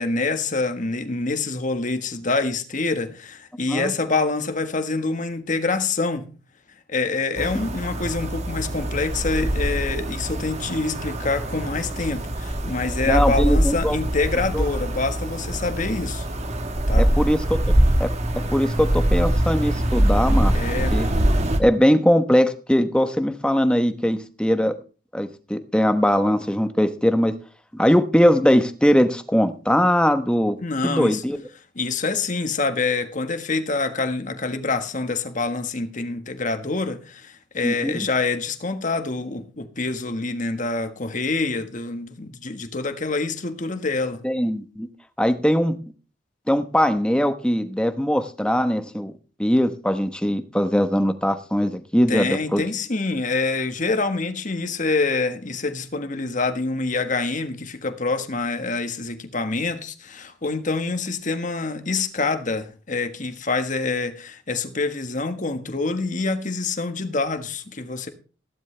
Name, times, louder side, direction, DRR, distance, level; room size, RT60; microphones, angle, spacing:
voice 1, 0.0-6.3 6.9-16.2 16.9-17.1 20.5-21.0 30.6-31.2 31.7-44.2 52.1-68.1, left 3 dB, 40° left, 1.5 m, -26 dB
sound 1, 7.4-21.6, right 1 dB, 35° right, 1.4 m, -23 dB
voice 2, 13.1-14.0 14.5-14.6 17.0-17.6 18.0-18.1 18.5-20.5 20.9-21.1 21.6-24.7 25.1-27.3 27.7-30.6 30.8-31.4 37.6-38.0 44.2-44.9 45.2-45.8 46.5-49.1 49.4-52.6, equal, 5° left, 1.1 m, -20 dB
15.5 x 12.0 x 3.3 m
head